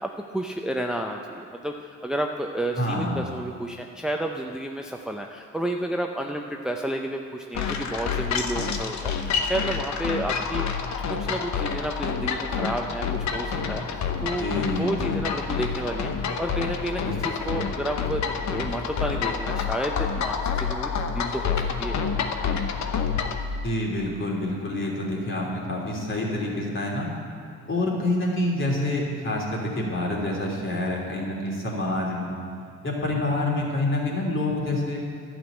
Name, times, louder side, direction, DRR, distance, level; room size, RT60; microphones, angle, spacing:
voice 1, 0.0-10.6 11.1-22.0, right 1 dB, ahead, 2 dB, 0.6 m, -31 dB
voice 2, 2.8-3.2 14.4-15.0 23.6-27.1 27.7-32.4 32.8-35.0, left 1 dB, 40° left, -2 dB, 3.1 m, -27 dB
sound 1, 7.5-23.4, left 6 dB, 65° left, 1.0 m, -28 dB
11.5 x 6.2 x 8.9 m, 2.3 s
cardioid pair, 90°, 30 cm